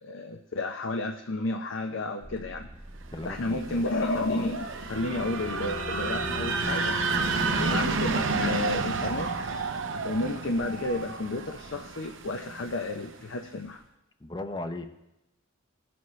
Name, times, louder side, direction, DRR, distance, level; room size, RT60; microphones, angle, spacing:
voice 1, 0.0-2.7 3.2-7.0 7.6-9.3 10.0-13.8, left 2 dB, 65° left, 4 dB, 0.6 m, -31 dB
sound 1, 2.2-8.1, right 1 dB, 10° right, 0.9 m, -49 dB
voice 2, 3.1-3.8 7.5-7.8 14.2-14.9, left 1 dB, 20° left, 8 dB, 0.6 m, -37 dB
sound 2, 3.3-13.1, right 4 dB, 65° right, 0.8 m, -31 dB
sound 3, 4.6-10.1, left 2 dB, 50° left, 1.3 m, -40 dB
17.5 x 7.0 x 3.2 m, 0.90 s
head